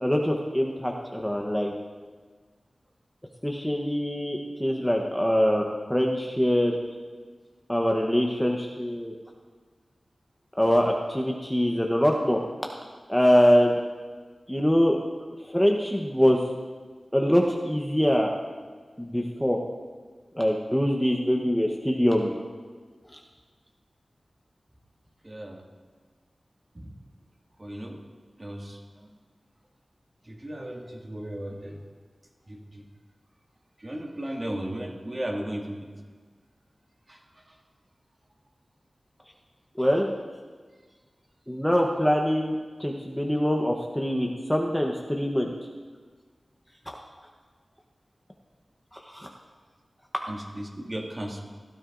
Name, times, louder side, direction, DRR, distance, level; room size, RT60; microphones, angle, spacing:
voice 1, 0.0-1.7 3.4-5.6 5.9-6.8 7.7-9.1 10.6-12.4 13.1-13.7 14.5-15.0 15.5-16.4 17.1-18.3 19.0-19.6 20.3-22.3 23.1-23.2 39.8-40.1 41.5-45.5 46.9-47.0 48.9-49.3, equal, 5° left, 0 dB, 0.9 m, -24 dB
voice 2, 25.2-25.6 26.7-26.9 27.6-28.0 28.4-29.1 30.2-31.8 32.5-32.8 33.8-35.9 37.1-37.6 50.3-51.4, right 1 dB, 35° right, -1 dB, 2.0 m, -36 dB
17.0 x 13.0 x 2.6 m, 1.5 s
wide cardioid pair, 70°, 0 cm